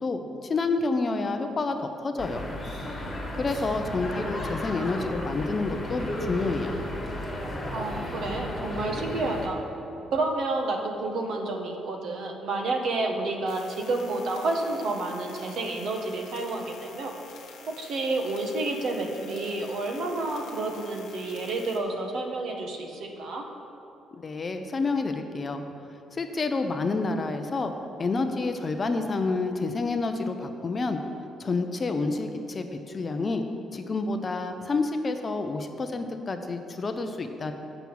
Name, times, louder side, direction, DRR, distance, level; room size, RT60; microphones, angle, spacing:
voice 1, 0.0-2.5 3.3-6.7 24.1-25.6 26.1-27.7 28.0-31.0 31.4-33.5 33.7-37.5, left 3 dB, 25° left, 7 dB, 0.5 m, -29 dB
sound 1, 2.2-9.5, left 1 dB, 5° left, 1.6 m, -34 dB
voice 2, 7.7-9.6 10.1-17.2 17.7-23.5, right 2 dB, 60° right, 2 dB, 1.0 m, -30 dB
sound 2, 13.5-21.8, left 6 dB, 75° left, 1.2 m, -49 dB
7.7 x 6.0 x 7.0 m, 3.0 s
cardioid pair, 155°, 0 cm